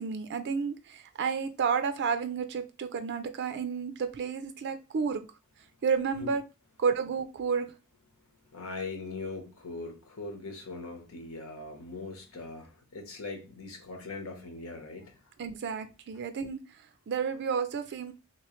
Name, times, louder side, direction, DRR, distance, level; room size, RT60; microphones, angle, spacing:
voice 1, 0.0-5.3 5.8-6.4 6.8-7.7 15.4-18.1, right 6 dB, 55° right, 9 dB, 0.4 m, -31 dB
voice 2, 8.5-15.2, left 3 dB, 90° left, 4 dB, 1.1 m, -41 dB
3.1 x 3.0 x 3.0 m, 0.32 s
head